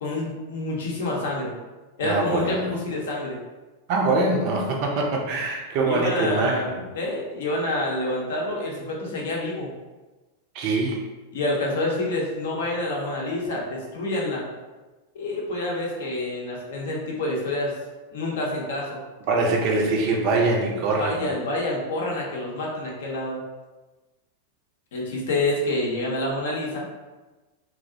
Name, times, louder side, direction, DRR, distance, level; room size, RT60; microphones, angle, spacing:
voice 1, 0.0-1.5 2.0-3.4 5.8-9.7 11.3-14.4 15.1-17.7 18.1-19.0 21.0-23.4 24.9-26.9, left 2 dB, 60° left, -2 dB, 0.6 m, -27 dB
voice 2, 2.0-2.7 3.9-6.8 10.5-11.0 19.3-21.3, right 3 dB, 45° right, 0 dB, 0.4 m, -23 dB
2.4 x 2.0 x 2.6 m, 1.2 s
figure-of-eight pair, 90°, 0 cm